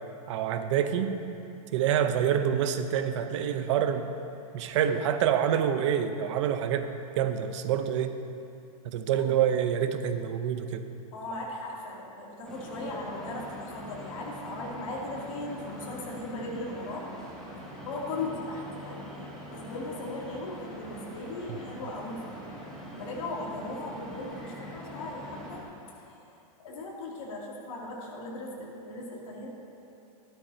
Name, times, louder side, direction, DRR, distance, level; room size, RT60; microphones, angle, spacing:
voice 1, 0.3-1.2 1.7-4.1 4.5-6.9 7.2-8.2 8.8-10.8 21.5-21.6, right 9 dB, 50° right, 8 dB, 0.8 m, -27 dB
voice 2, 11.1-17.1 17.9-22.2 22.9-26.3 26.6-29.5, left 2 dB, 60° left, -4 dB, 2.8 m, -38 dB
sound 1, 12.4-25.6, equal, 5° left, 2.0 m, -43 dB
14.5 x 12.5 x 2.8 m, 2.7 s
supercardioid pair, 165°, 20 cm